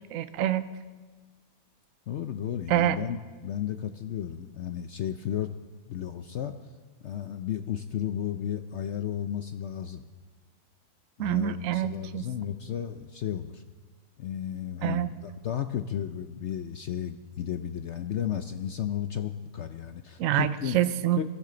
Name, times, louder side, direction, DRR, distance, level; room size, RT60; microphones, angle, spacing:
voice 1, 0.1-0.7 2.7-3.0 11.2-12.2 14.8-15.1 20.2-20.5 20.7-21.2, right 12 dB, 65° right, 13 dB, 1.0 m, -26 dB
voice 2, 2.1-5.5 5.9-6.6 7.0-10.0 11.2-13.6 14.2-20.8 21.1-21.2, left 10 dB, 65° left, 8 dB, 0.7 m, -33 dB
22.0 x 13.5 x 3.9 m, 1.3 s
omnidirectional pair, 1.7 m